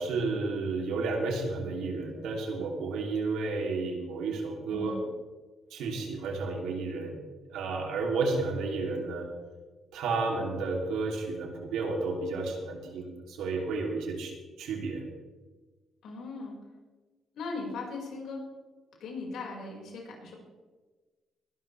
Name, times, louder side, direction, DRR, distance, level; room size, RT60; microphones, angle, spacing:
voice 1, 0.0-4.9 5.7-7.2 7.5-9.3 9.9-14.3 14.6-15.0, right 3 dB, 85° right, 1 dB, 3.1 m, -32 dB
voice 2, 4.7-5.1 16.0-16.6 17.3-18.4 19.0-20.4, left 3 dB, 75° left, -1 dB, 5.4 m, -38 dB
21.0 x 12.0 x 3.4 m, 1.3 s
cardioid pair, 90°, 0 cm